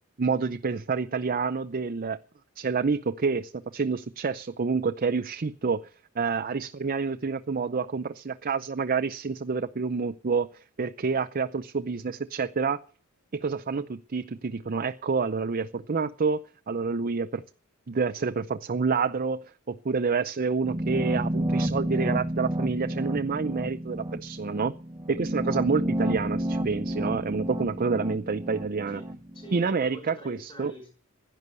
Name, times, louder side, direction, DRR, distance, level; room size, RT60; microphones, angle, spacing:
voice 1, 0.2-2.2 2.6-5.8 6.2-10.5 10.8-12.8 13.3-17.4 17.9-24.7 25.1-29.0 29.5-30.7, right 4 dB, 40° right, 10 dB, 0.5 m, -28 dB
sound 1, 20.6-29.6, right 1 dB, 20° right, 1.0 m, -30 dB
voice 2, 28.9-30.9, right 1 dB, 20° left, -3 dB, 4.8 m, -45 dB
11.0 x 10.5 x 8.2 m, 0.43 s
head